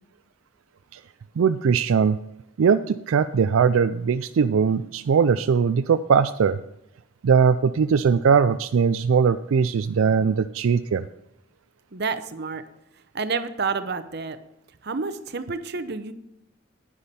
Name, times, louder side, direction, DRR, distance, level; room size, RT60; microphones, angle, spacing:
voice 1, 1.4-2.2 2.6-6.6 7.2-11.1, right 6 dB, 75° right, 11 dB, 0.4 m, -20 dB
voice 2, 11.9-12.6 13.1-14.4 14.8-16.1, right 4 dB, 55° right, 11 dB, 0.8 m, -29 dB
10.5 x 9.9 x 4.3 m, 0.86 s
head